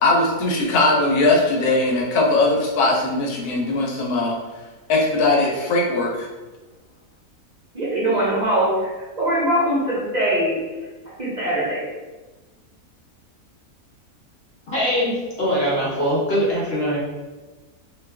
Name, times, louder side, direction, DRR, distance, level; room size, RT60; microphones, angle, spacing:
voice 1, 0.0-4.4 4.9-6.3, left 2 dB, 85° left, -1 dB, 1.2 m, -19 dB
voice 2, 7.7-10.6 11.2-11.8, right 1 dB, 35° right, -9 dB, 0.7 m, -22 dB
voice 3, 14.7-17.0, equal, 55° left, -6 dB, 0.8 m, -22 dB
2.6 x 2.3 x 3.3 m, 1.2 s
omnidirectional pair, 1.6 m